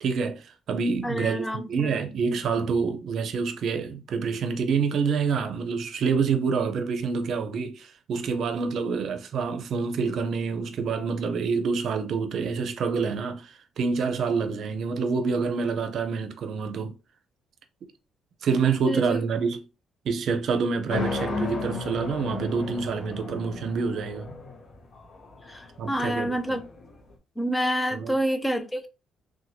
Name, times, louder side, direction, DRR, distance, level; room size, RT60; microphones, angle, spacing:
voice 1, 0.0-17.0 18.4-19.6 20.0-24.3 25.8-26.6 27.9-28.2, right 5 dB, 60° right, 0.6 m, -27 dB
voice 2, 1.0-2.0 18.8-19.2 25.5-26.6 27.4-28.9, equal, 10° left, 0.5 m, -28 dB
sound 1, 20.9-27.0, left 4 dB, 50° left, 0.7 m, -34 dB
2.9 x 2.2 x 2.8 m
cardioid pair, 115°, 0 cm